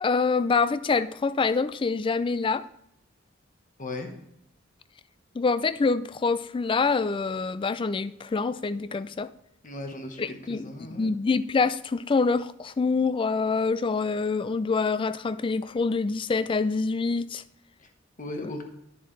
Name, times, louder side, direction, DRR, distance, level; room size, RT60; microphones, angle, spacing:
voice 1, 0.0-2.6 5.4-9.3 10.2-10.6 11.0-17.4, left 4 dB, 25° left, 0.3 m, -26 dB
voice 2, 3.8-4.1 9.6-11.2 17.8-17.9 18.2-18.6, left 2 dB, 40° left, 1.2 m, -37 dB
10.5 x 7.1 x 3.2 m
head